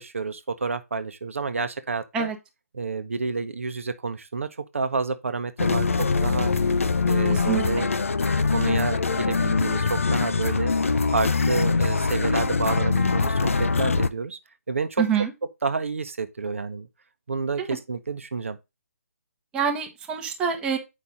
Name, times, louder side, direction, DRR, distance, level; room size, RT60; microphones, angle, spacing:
voice 1, 0.0-2.3 2.7-4.5 4.7-6.5 7.0-7.9 8.4-10.7 11.1-14.4 14.7-15.0 15.6-16.9 17.3-18.6, right 4 dB, 55° right, 0.9 m, -29 dB
sound 1, 5.6-14.1, left 4 dB, 60° left, 0.6 m, -23 dB
voice 2, 7.3-7.6 15.0-15.3 19.5-20.8, right 7 dB, 10° right, 0.9 m, -25 dB
8.2 x 5.2 x 3.8 m
figure-of-eight pair, 140°, 8 cm